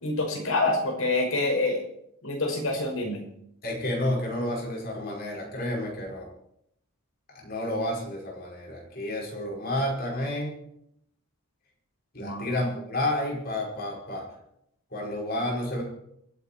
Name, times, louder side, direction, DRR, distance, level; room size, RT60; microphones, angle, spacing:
voice 1, 0.0-1.8 2.2-3.2 12.2-12.5, left 2 dB, 70° left, 1 dB, 5.4 m, -26 dB
voice 2, 3.6-6.3 7.4-10.6 12.1-14.3 14.9-15.8, left 1 dB, 45° left, -1 dB, 5.2 m, -30 dB
27.5 x 9.4 x 4.5 m, 0.74 s
head